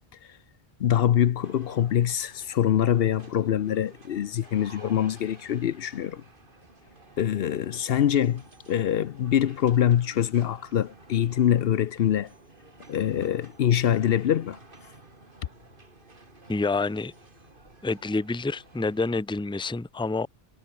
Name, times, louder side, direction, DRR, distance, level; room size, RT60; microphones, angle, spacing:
voice 1, 0.8-6.2 7.2-12.3 12.9-14.6, left 10 dB, 70° left, 0.8 m, -24 dB
sound 1, 1.4-19.2, right 2 dB, 55° right, 3.3 m, -52 dB
voice 2, 16.5-17.1 17.8-20.3, left 3 dB, 5° left, 0.7 m, -28 dB
omnidirectional pair, 1.1 m